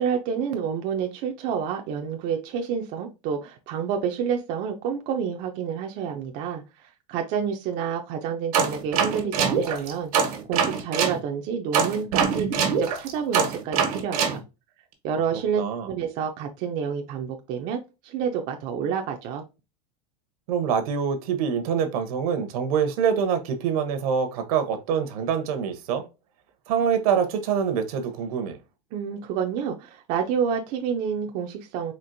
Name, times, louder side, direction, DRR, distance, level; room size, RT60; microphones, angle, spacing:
voice 1, 0.0-14.4 15.0-19.4 28.9-31.9, right 7 dB, 40° right, 0.5 m, -29 dB
sound 1, 8.5-11.2 11.7-14.4, right 6 dB, 90° right, 1.3 m, -23 dB
voice 2, 15.6-15.9 20.5-26.1 26.7-28.6, right 7 dB, 70° right, 0.9 m, -25 dB
4.3 x 2.9 x 2.5 m
supercardioid pair, 155°, 19 cm